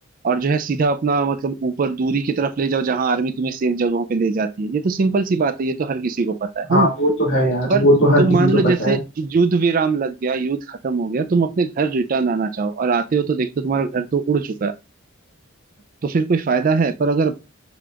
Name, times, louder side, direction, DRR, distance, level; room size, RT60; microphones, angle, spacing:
voice 1, 0.2-6.9 7.7-7.8 8.2-14.7 16.0-17.3, right 4 dB, 40° right, 0.3 m, -21 dB
voice 2, 6.7-9.0, equal, 60° left, 2.2 m, -17 dB
6.8 x 2.8 x 2.4 m
head